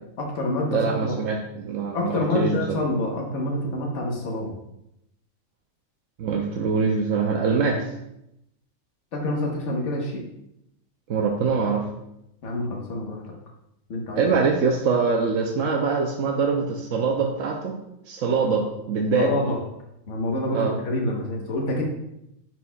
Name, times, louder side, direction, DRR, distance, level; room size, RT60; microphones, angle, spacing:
voice 1, 0.2-1.1 1.9-4.6 9.1-10.2 12.4-13.2 13.9-14.2 19.2-19.6 20.1-21.8, left 1 dB, 60° left, -1 dB, 1.5 m, -27 dB
voice 2, 0.7-2.6 6.2-7.8 11.1-11.9 14.2-17.8 18.1-19.3 20.5-20.7, right 5 dB, 70° right, 1 dB, 1.0 m, -23 dB
10.5 x 4.2 x 2.3 m, 0.84 s
omnidirectional pair, 1.4 m